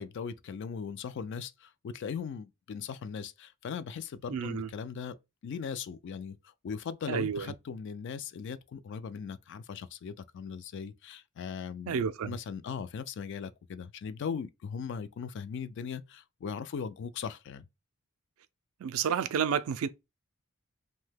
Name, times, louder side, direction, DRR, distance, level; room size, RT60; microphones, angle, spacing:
voice 1, 0.0-5.2 5.4-11.9 12.3-17.7, left 6 dB, 55° left, 0.3 m, -39 dB
voice 2, 4.3-4.7 7.1-7.5 11.9-12.3 18.8-19.9, right 7 dB, 70° right, 0.3 m, -30 dB
2.7 x 2.2 x 3.3 m
head